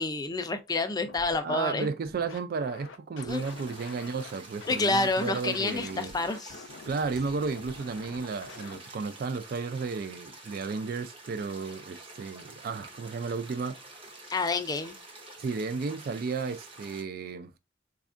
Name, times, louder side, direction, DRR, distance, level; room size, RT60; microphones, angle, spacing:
voice 1, 0.0-1.9 3.2-3.4 4.7-6.6 14.3-14.9, left 3 dB, 20° left, 0.4 m, -29 dB
Scratching (performance technique), 1.1-1.4 1.8-4.3 4.6-8.8, left 4 dB, 85° left, 0.5 m, -47 dB
voice 2, 1.4-6.1 6.8-13.8 15.4-17.5, right 4 dB, 50° right, 0.3 m, -33 dB
sound 1, 3.3-17.0, right 2 dB, 30° right, 0.8 m, -48 dB
4.2 x 2.4 x 2.4 m
head